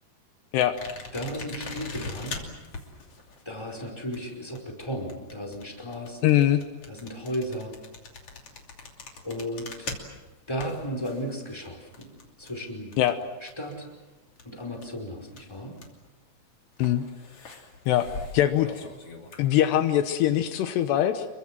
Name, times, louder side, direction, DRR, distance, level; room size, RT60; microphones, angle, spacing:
sound 1, 0.6-14.0 14.2-16.1 16.7-19.5, left 3 dB, 40° left, 3.4 m, -42 dB
voice 1, 1.1-2.5 3.4-6.2 6.9-7.7 9.2-9.9 10.5-12.1 12.4-12.9 13.4-13.9 14.4-15.7, equal, 5° left, 0 dB, 4.6 m, -34 dB
voice 2, 6.2-6.6 13.0-13.2 16.8-17.1 17.9-18.1 18.3-18.9 19.4-21.3, left 12 dB, 80° left, 9 dB, 3.0 m, -22 dB
27.5 x 23.5 x 7.6 m, 1.2 s
omnidirectional pair, 5.0 m